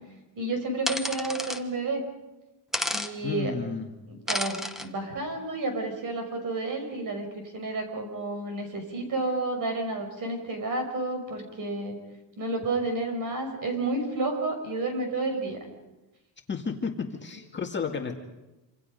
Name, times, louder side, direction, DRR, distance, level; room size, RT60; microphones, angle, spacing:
voice 1, 0.4-2.1 2.9-3.6 4.1-12.0 12.4-15.6, right 2 dB, 45° right, 5 dB, 5.9 m, -31 dB
sound 1, 0.9-1.6 2.7-3.1 4.3-4.9, left 1 dB, ahead, 1.2 m, -30 dB
voice 2, 3.2-3.9 16.5-18.1, left 5 dB, 25° left, 2 dB, 2.0 m, -32 dB
27.0 x 26.5 x 5.4 m, 1.0 s
cardioid pair, 155°, 43 cm